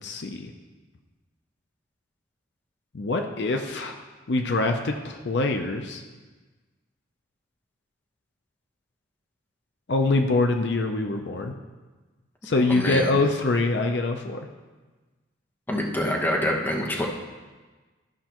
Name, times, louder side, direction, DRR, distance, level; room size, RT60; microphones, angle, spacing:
voice 1, 0.0-0.5 2.9-4.0 4.3-6.0 9.9-11.5 12.4-14.4, left 2 dB, 60° left, 4 dB, 0.6 m, -24 dB
voice 2, 12.7-13.1 15.7-17.1, left 1 dB, 10° left, -1 dB, 1.0 m, -26 dB
13.5 x 5.3 x 3.0 m, 1.3 s
head